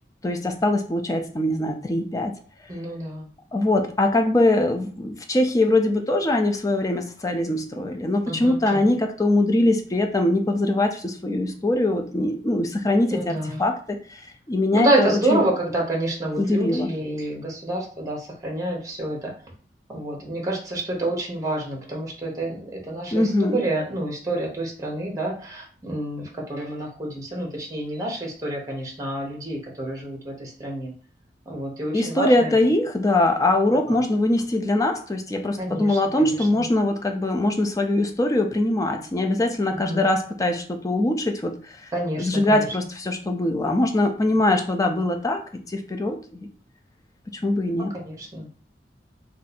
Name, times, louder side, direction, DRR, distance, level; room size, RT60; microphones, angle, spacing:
voice 1, 0.2-2.3 3.5-14.2 14.5-15.4 16.4-16.9 23.1-23.6 31.9-41.9 42.2-46.5 47.3-48.0, left 1 dB, 20° left, 5 dB, 0.4 m, -22 dB
voice 2, 2.7-3.3 8.3-8.9 13.1-13.6 14.7-19.3 19.9-30.9 31.5-32.5 33.9-34.0 35.6-36.6 39.7-40.0 41.9-42.7 48.0-48.5, right 1 dB, 20° right, -1 dB, 0.7 m, -28 dB
2.6 x 2.3 x 4.1 m, 0.43 s
head